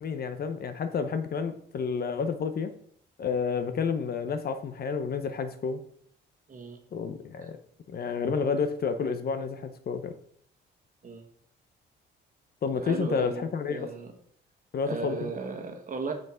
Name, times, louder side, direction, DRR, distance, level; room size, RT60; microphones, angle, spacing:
voice 1, 0.0-2.7 3.2-5.8 6.9-7.6 7.9-10.1 12.6-13.9 14.7-15.3, left 5 dB, 50° left, 10 dB, 0.8 m, -30 dB
voice 2, 12.8-14.1 14.9-16.1, right 4 dB, 40° right, 4 dB, 1.5 m, -36 dB
5.9 x 5.7 x 4.4 m, 0.64 s
cardioid pair, 90°, 20 cm